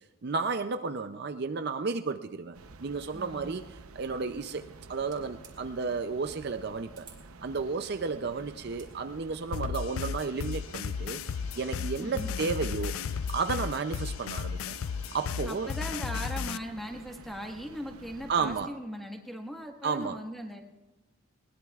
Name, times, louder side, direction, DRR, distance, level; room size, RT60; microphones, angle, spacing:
voice 1, 0.2-3.6 3.9-7.1 7.4-11.2 11.6-13.0 13.3-14.6 15.1-15.7 18.3-18.7 19.8-20.2, right 4 dB, 50° right, 8 dB, 0.5 m, -32 dB
sound 1, 2.5-18.7, right 3 dB, 90° right, 0.8 m, -50 dB
voice 2, 3.1-3.6 12.0-12.3 15.4-20.6, equal, ahead, 3 dB, 1.5 m, -39 dB
sound 2, 5.1-5.6 6.9-7.2 8.6-8.9, right 6 dB, 20° right, 2.5 m, -53 dB
sound 3, 9.5-16.6, left 7 dB, 75° left, 0.4 m, -34 dB
21.0 x 20.0 x 2.4 m, 1.1 s
head